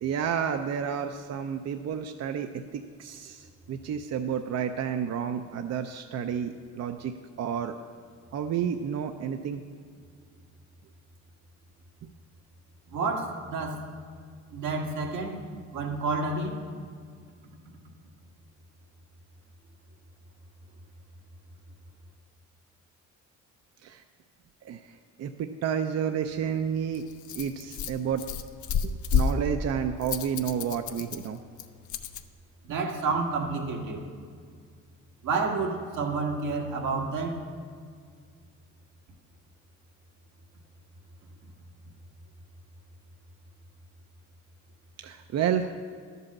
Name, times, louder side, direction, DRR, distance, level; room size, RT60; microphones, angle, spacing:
voice 1, 0.0-7.7 8.3-9.6 23.8-24.0 24.6-24.8 25.2-27.0 27.3-28.2 28.8-31.4 45.0-45.7, right 8 dB, 60° right, 7 dB, 0.5 m, -30 dB
voice 2, 12.9-13.8 14.5-15.4 15.7-16.6 32.7-34.0 35.2-37.3, right 3 dB, 85° right, 0 dB, 1.6 m, -29 dB
Rattle, 26.2-32.2, left 6 dB, 75° left, 0.6 m, -32 dB
11.5 x 5.5 x 7.2 m, 2.1 s
cardioid pair, 90°, 30 cm